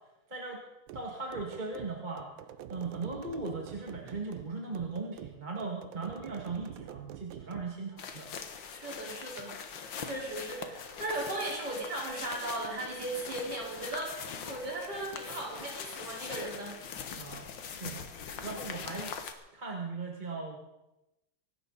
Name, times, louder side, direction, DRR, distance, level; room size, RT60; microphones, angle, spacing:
voice 1, 0.3-0.6 0.9-2.3 2.7-8.3 17.2-18.1 18.4-19.1 19.5-20.6, right 3 dB, 20° right, -1 dB, 2.0 m, -38 dB
sound 1, 0.9-7.7, right 11 dB, 70° right, 1.4 m, -47 dB
sound 2, 8.0-19.3, left 6 dB, 60° left, 1.8 m, -42 dB
voice 2, 8.7-9.5 10.0-14.1 14.4-16.8, right 2 dB, 50° right, -4 dB, 5.1 m, -37 dB
24.5 x 12.0 x 4.1 m, 0.95 s
omnidirectional pair, 2.3 m